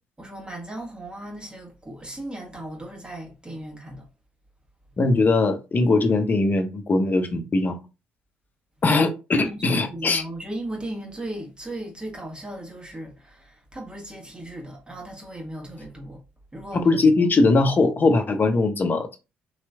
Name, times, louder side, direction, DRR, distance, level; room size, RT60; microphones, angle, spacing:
voice 1, 0.2-4.1 9.4-16.2 16.5-16.8, right 1 dB, 20° right, 1.4 m, -37 dB
voice 2, 5.0-7.8 8.8-10.2 16.7-19.2, left 3 dB, 35° left, 0.8 m, -20 dB
4.0 x 3.0 x 2.3 m
hypercardioid pair, 50°, 5 cm